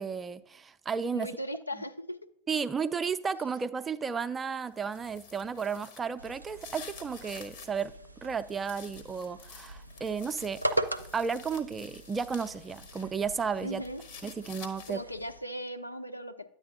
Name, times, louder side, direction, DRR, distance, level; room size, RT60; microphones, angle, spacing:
voice 1, 0.0-1.3 2.5-7.9 8.2-10.6 11.1-13.8 14.2-15.0, right 6 dB, 15° right, 0.4 m, -33 dB
voice 2, 1.1-2.2 13.6-14.0 14.9-16.5, equal, 85° left, 0.5 m, -38 dB
sound 1, 4.7-7.8 8.2-13.1 13.4-15.2, left 7 dB, 50° left, 1.2 m, -50 dB
sound 2, 6.2-15.4, right 1 dB, 85° right, 0.4 m, -40 dB
10.0 x 8.3 x 2.8 m
figure-of-eight pair, 90°, 0 cm